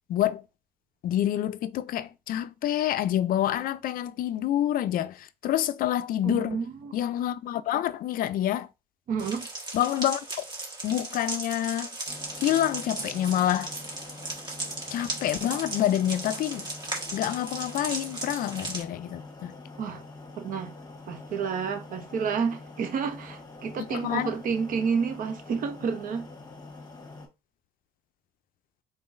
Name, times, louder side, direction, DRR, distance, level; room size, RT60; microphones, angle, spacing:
voice 1, 0.1-0.4 1.0-6.6 6.9-8.7 9.7-10.4 10.8-11.9 12.4-13.7 14.9-16.7 17.1-19.6 23.9-24.3, left 12 dB, 60° left, 0.4 m, -27 dB
voice 2, 6.2-7.0 9.1-9.5 19.8-20.0 20.4-20.7 21.1-26.3, right 6 dB, 55° right, 0.8 m, -30 dB
sound 1, 9.2-18.8, right 2 dB, 25° right, 1.5 m, -36 dB
sound 2, 12.1-27.3, left 3 dB, 20° left, 1.1 m, -45 dB
3.8 x 3.7 x 2.6 m
cardioid pair, 110°, 17 cm